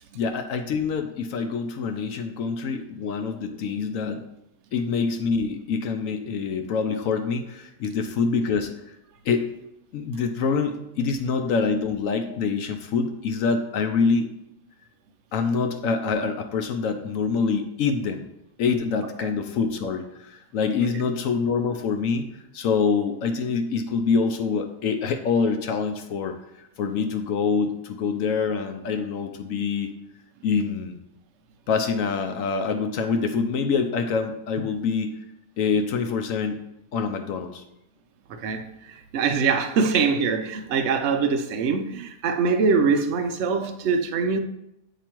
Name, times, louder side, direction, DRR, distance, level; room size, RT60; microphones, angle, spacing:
voice 1, 0.1-4.2 4.7-9.0 9.2-9.5 9.9-14.3 15.3-18.3 18.6-22.3 22.5-29.9 30.4-31.0 31.7-35.1 35.6-36.6 36.9-37.6, left 5 dB, 70° left, 6 dB, 0.8 m, -25 dB
voice 2, 38.3-44.4, right 5 dB, 70° right, 6 dB, 0.6 m, -23 dB
8.3 x 3.0 x 4.4 m, 0.84 s
omnidirectional pair, 1.8 m